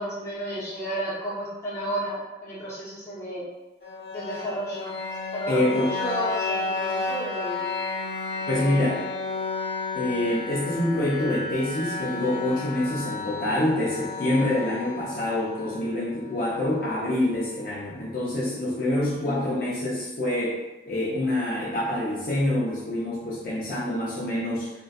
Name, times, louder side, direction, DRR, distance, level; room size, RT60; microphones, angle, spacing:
voice 1, 0.0-3.4 4.1-4.9 5.3-7.7 8.5-9.0 19.2-19.5, equal, 15° left, -9 dB, 0.7 m, -33 dB
sound 1, 3.8-17.8, left 4 dB, 70° left, 0.9 m, -33 dB
voice 2, 5.5-5.9 8.5-9.0 9.9-20.6 20.9-24.8, left 1 dB, 50° left, -7 dB, 0.5 m, -26 dB
2.5 x 2.2 x 2.2 m, 1.1 s
head